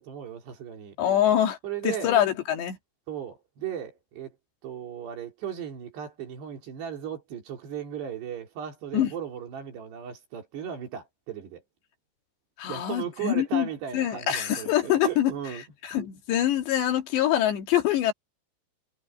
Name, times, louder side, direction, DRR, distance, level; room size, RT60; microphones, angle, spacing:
voice 1, 0.0-1.0 1.6-2.2 3.1-4.4 4.6-11.6 12.7-15.6, right 9 dB, 65° right, 5.6 m, -36 dB
voice 2, 1.0-1.6 1.8-2.8 8.9-9.1 12.6-13.7 13.9-15.3 15.8-18.1, left 11 dB, 70° left, 4.1 m, -24 dB
omnidirectional pair, 5.4 m